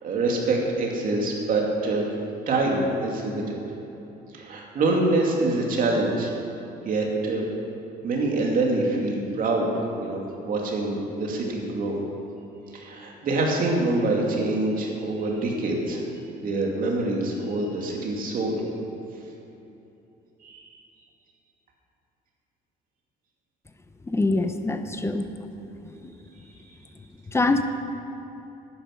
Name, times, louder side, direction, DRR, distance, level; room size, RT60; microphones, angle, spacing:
voice 1, 0.0-2.1 2.5-3.6 4.3-6.3 6.8-7.5 8.0-9.7 10.0-12.0 12.7-16.0 16.4-18.6 20.4-20.6, right 2 dB, 55° right, -1 dB, 2.5 m, -25 dB
voice 2, 24.1-25.3 25.8-26.1 27.3-27.6, left 2 dB, 15° left, 8 dB, 0.7 m, -24 dB
11.5 x 9.7 x 5.9 m, 3.0 s
cardioid pair, 110°, 17 cm